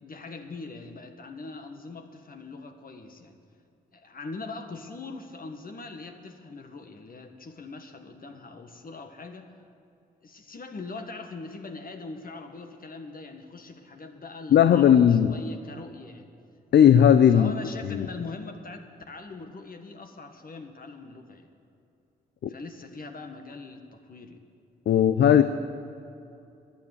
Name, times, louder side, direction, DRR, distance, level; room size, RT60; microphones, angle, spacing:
voice 1, 0.0-3.4 3.9-9.5 10.2-16.3 17.3-21.5 22.5-24.4, left 3 dB, 45° left, 5 dB, 1.6 m, -41 dB
voice 2, 14.5-15.4 16.7-17.5 17.9-18.1 22.4-22.5 24.9-25.4, left 9 dB, 60° left, 11 dB, 0.6 m, -17 dB
13.0 x 9.2 x 9.9 m, 2.7 s
supercardioid pair, 45°, 20 cm